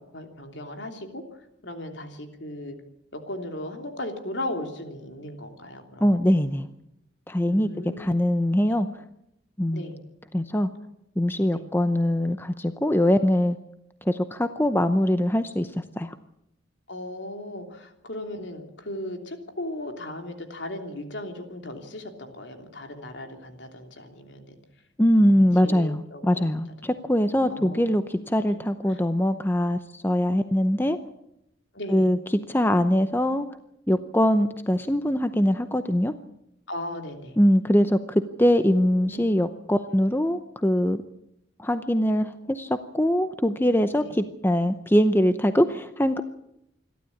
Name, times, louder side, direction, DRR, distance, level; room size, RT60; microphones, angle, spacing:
voice 1, 0.1-1.2 1.6-2.8 3.1-6.4 7.4-8.2 9.7-10.0 11.5-11.7 16.9-24.6 25.2-26.4 26.8-26.9 27.5-27.8 28.4-28.6 28.9-29.1 31.7-32.1 36.7-37.4 38.6-39.4 44.0-44.2, left 1 dB, 70° left, 5 dB, 3.1 m, -37 dB
voice 2, 6.0-6.7 7.3-7.7 8.0-8.9 9.6-9.9 10.3-10.7 11.2-13.6 14.1-16.1 25.0-31.0 31.9-32.2 32.5-33.5 33.9-36.1 37.4-41.0 41.6-46.2, equal, 10° left, 10 dB, 0.7 m, -22 dB
27.0 x 12.5 x 8.6 m, 0.81 s
head